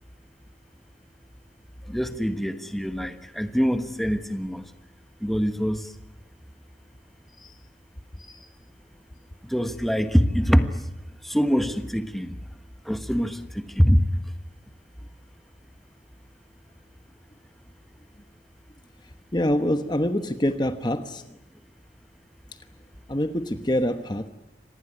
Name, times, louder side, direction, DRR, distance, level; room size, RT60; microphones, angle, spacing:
voice 1, 1.9-4.6 5.2-5.9 9.5-10.8 11.2-12.3 12.9-13.4 13.8-14.0, equal, ahead, 1.3 m, -23 dB
voice 2, 19.3-21.2 23.1-24.3, left 1 dB, 25° left, 1.1 m, -25 dB
26.0 x 19.0 x 9.9 m
head